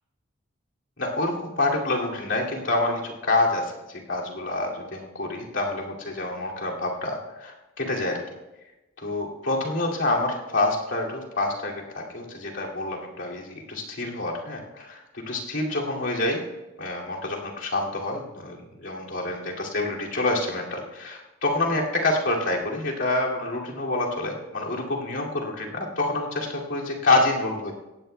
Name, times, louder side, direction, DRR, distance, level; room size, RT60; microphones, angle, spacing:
voice 1, 1.0-8.2 9.0-16.4 16.8-27.7, left 2 dB, 65° left, -3 dB, 2.5 m, -27 dB
17.5 x 15.5 x 2.3 m, 1.0 s
head